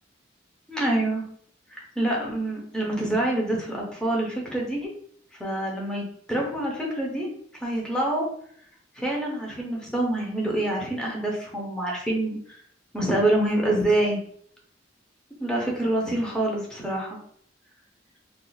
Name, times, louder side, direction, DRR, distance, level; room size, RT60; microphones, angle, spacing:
voice 1, 0.7-1.2 1.7-4.9 5.4-7.3 7.6-8.3 9.0-12.6 12.9-14.2 15.4-17.2, right 1 dB, 5° left, -2 dB, 0.7 m, -26 dB
2.4 x 2.4 x 4.0 m, 0.63 s
head